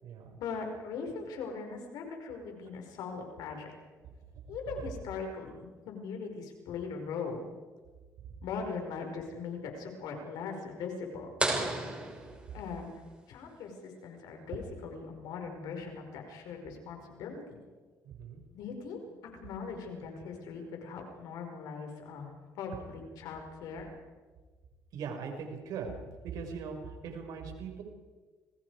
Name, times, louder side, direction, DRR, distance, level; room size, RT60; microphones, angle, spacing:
voice 1, 0.4-3.7 4.5-7.4 8.4-11.3 12.5-13.0 13.3-17.6 18.5-22.3 22.6-23.9, left 5 dB, 85° left, 3 dB, 5.2 m, -40 dB
sound 1, 11.4-13.1, right 2 dB, 15° right, 6.0 m, -34 dB
voice 2, 18.0-18.4 24.9-26.0 26.2-27.8, right 6 dB, 75° right, 3 dB, 5.6 m, -40 dB
30.0 x 22.0 x 4.9 m, 1.4 s
cardioid pair, 100°, 7 cm